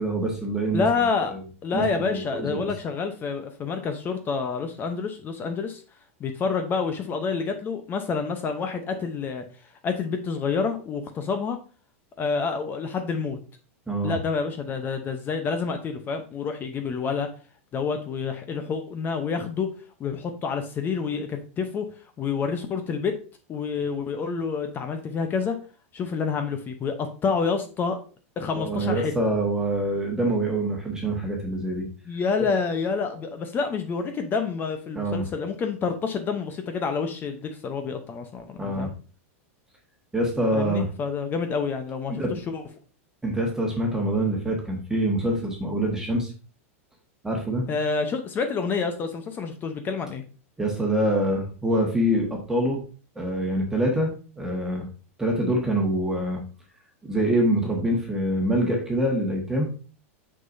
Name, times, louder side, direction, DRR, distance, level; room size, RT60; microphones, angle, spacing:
voice 1, 0.0-0.8 1.7-1.8 2.1-2.7 13.9-14.2 28.5-31.9 32.4-32.5 34.9-35.3 38.6-38.9 40.1-40.9 42.1-42.3 43.2-46.3 47.2-47.7 50.6-52.8 53.1-54.1 54.4-54.9 55.2-56.4 57.0-59.7, right 1 dB, 5° right, -1 dB, 1.5 m, -25 dB
voice 2, 0.7-1.3 1.6-5.8 6.2-9.4 9.8-11.6 12.2-13.4 14.0-17.3 17.7-19.7 20.0-21.9 22.2-23.1 23.5-25.6 25.9-28.0 28.4-29.1 32.1-38.9 40.5-42.6 47.7-50.2, left 5 dB, 25° left, 7 dB, 0.7 m, -28 dB
6.4 x 5.7 x 2.6 m, 0.37 s
supercardioid pair, 135°, 8 cm